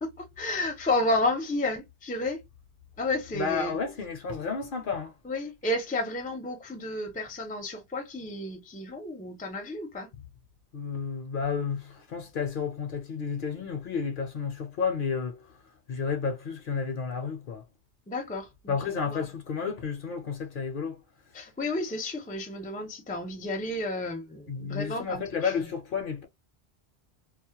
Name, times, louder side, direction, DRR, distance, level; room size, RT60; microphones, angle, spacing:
voice 1, 0.0-2.4 3.0-3.8 5.2-10.1 18.1-19.2 21.3-25.5, left 2 dB, 10° left, 0.4 m, -31 dB
voice 2, 3.3-5.2 10.7-17.6 18.7-21.0 24.5-26.2, left 5 dB, 60° left, 0.6 m, -31 dB
2.3 x 2.0 x 2.7 m
omnidirectional pair, 1.1 m